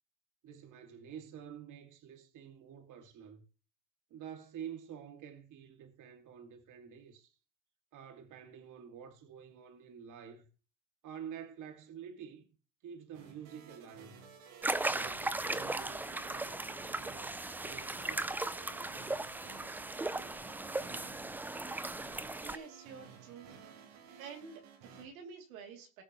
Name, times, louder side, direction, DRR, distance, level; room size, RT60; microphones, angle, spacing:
voice 1, 0.4-3.4 4.1-7.3 7.9-10.5 11.0-12.5 12.8-14.2 14.8-18.4, right 8 dB, 45° right, 2.3 m, -49 dB
sound 1, 13.1-25.0, right 6 dB, 70° right, 4.4 m, -55 dB
sound 2, 14.6-22.6, right 2 dB, 5° right, 0.4 m, -37 dB
voice 2, 22.4-23.6 24.2-26.0, right 6 dB, 90° right, 3.0 m, -49 dB
19.5 x 6.7 x 3.1 m
supercardioid pair, 105°, 41 cm